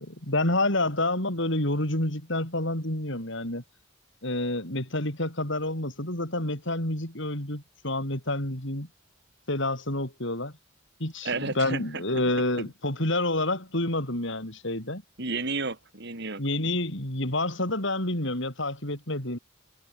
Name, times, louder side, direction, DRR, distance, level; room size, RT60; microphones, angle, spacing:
voice 1, 0.0-3.6 4.2-8.9 9.5-10.5 11.0-15.0 16.4-19.4, left 1 dB, 60° left, 6.7 m, -28 dB
voice 2, 11.2-12.3 12.6-12.7 15.2-16.4, right 3 dB, 55° right, 5.6 m, -32 dB
head